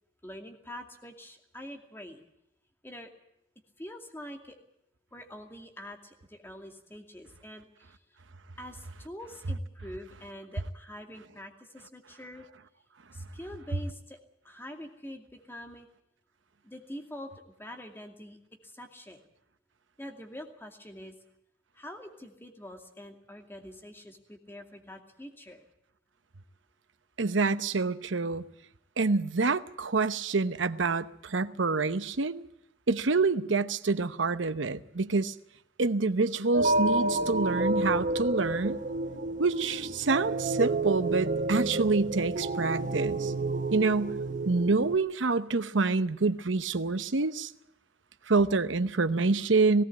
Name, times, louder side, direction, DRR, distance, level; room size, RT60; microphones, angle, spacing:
voice 1, 0.2-2.2 2.8-3.1 3.8-4.6 5.1-8.0 8.6-12.4 13.1-14.2 14.4-15.9 16.6-18.4 18.6-19.2 20.0-21.2 21.7-25.7, left 1 dB, 10° left, 2.4 m, -45 dB
voice 2, 27.2-28.5 29.0-32.4 32.9-35.3 35.8-38.8 39.4-43.3 43.7-44.2 44.4-47.5 48.3-49.8, right 3 dB, 75° right, 0.9 m, -27 dB
sound 1, 36.5-45.0, right 2 dB, 45° right, 0.9 m, -30 dB
18.0 x 17.0 x 8.5 m
head